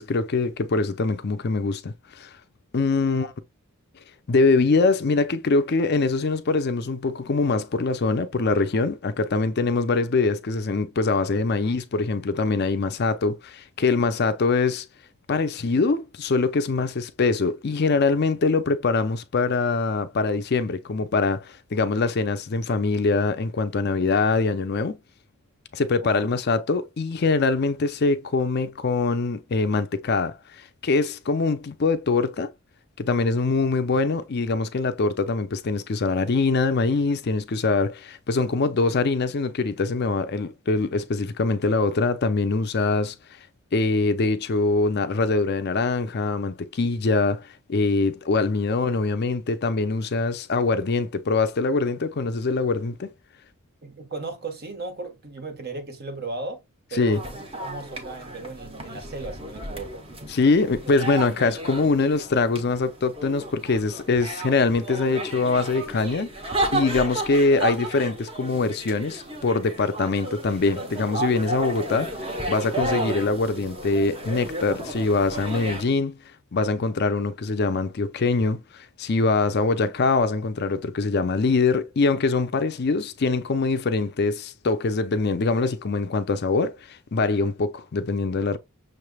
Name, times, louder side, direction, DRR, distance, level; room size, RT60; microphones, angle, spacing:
voice 1, 0.0-2.3 2.7-3.3 4.3-14.9 15.3-25.0 25.7-32.5 33.0-43.1 43.7-53.1 56.9-57.2 60.3-66.3 66.7-76.2 76.5-88.6, left 3 dB, 50° left, 0.5 m, -23 dB
voice 2, 53.8-56.6 56.9-60.0, right 3 dB, 45° right, 1.3 m, -36 dB
sound 1, 57.1-75.8, right 1 dB, 25° right, 1.0 m, -33 dB
6.3 x 3.2 x 2.2 m
head